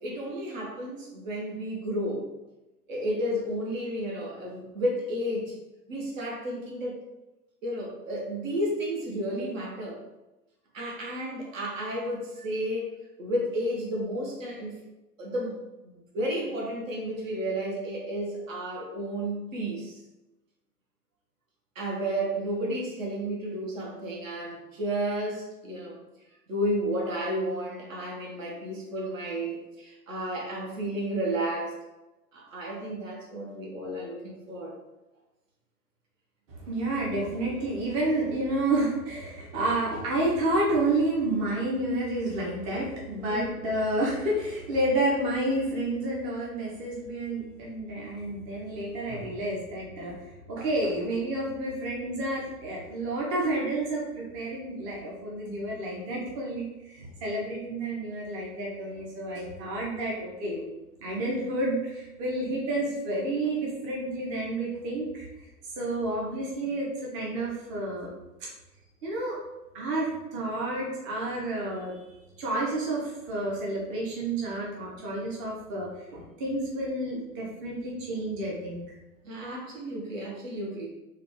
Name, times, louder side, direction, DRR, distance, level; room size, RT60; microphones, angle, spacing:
voice 1, 0.0-2.3 2.9-5.6 5.9-7.0 7.6-10.0 10.7-12.9 13.2-14.8 15.2-15.6 15.8-20.0 21.7-26.0 26.5-31.7 32.3-34.7 43.3-43.5 79.2-80.9, right 1 dB, 55° right, -2 dB, 1.1 m, -32 dB
voice 2, 36.7-50.2 50.5-60.6 61.0-65.3 65.8-68.1 69.0-69.3 69.7-72.0 72.4-78.8, right 1 dB, 30° right, -4 dB, 0.9 m, -30 dB
3.9 x 2.4 x 3.1 m, 1.0 s
figure-of-eight pair, 100°, 47 cm